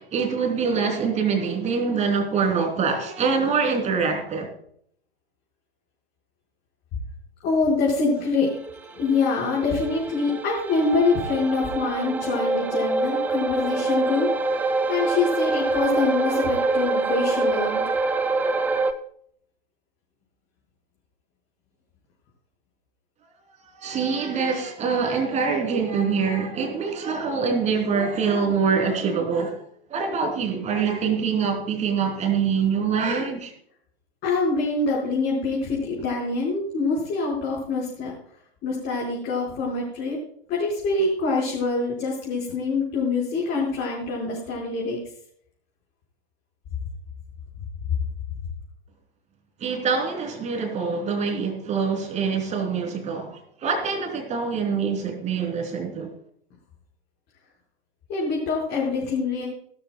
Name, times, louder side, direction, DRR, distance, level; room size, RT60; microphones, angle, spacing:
voice 1, 0.0-4.5 23.6-29.6 29.9-33.5 49.6-56.1, right 5 dB, 20° right, 3.1 m, -25 dB
voice 2, 7.4-8.5 9.0-14.5 14.9-17.8 34.2-38.1 38.6-40.2 40.5-45.0 58.1-59.5, left 3 dB, 30° left, 4.7 m, -25 dB
sound 1, 8.5-18.9, right 3 dB, 5° right, 0.4 m, -25 dB
17.0 x 12.5 x 2.2 m
figure-of-eight pair, 105°, 31 cm